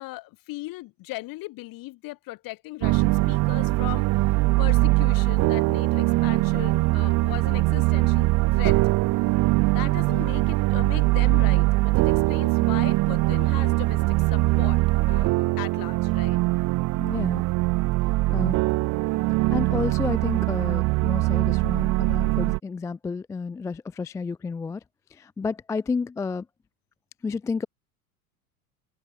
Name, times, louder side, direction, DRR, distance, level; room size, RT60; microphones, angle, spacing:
voice 1, 0.0-4.1 4.6-8.3 8.6-8.8 9.7-14.8 15.1-16.4, left 19 dB, 50° left, 3.2 m, -38 dB
sound 1, 2.8-22.6, right 21 dB, 40° right, 0.8 m, -22 dB
voice 2, 17.0-17.4 18.3-18.7 19.5-24.8 25.2-26.4 27.2-27.7, left 4 dB, 10° left, 0.3 m, -31 dB
hypercardioid pair, 90°, 44 cm